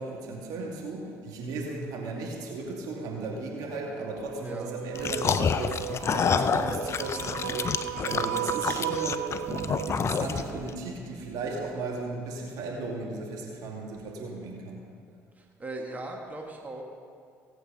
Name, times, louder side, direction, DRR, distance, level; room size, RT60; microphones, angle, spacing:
voice 1, 0.0-5.8 6.1-9.4 9.9-14.8, right 3 dB, 70° right, -1 dB, 2.5 m, -36 dB
sound 1, 4.3-10.0, right 15 dB, 90° right, 0.4 m, -35 dB
sound 2, 5.0-10.7, left 6 dB, 40° left, 0.6 m, -28 dB
Bass guitar, 9.5-12.6, right 6 dB, 50° right, 1.4 m, -43 dB
voice 2, 15.4-16.8, right 2 dB, 25° right, 1 dB, 1.8 m, -38 dB
17.5 x 8.0 x 5.2 m, 2.3 s
hypercardioid pair, 65°, 7 cm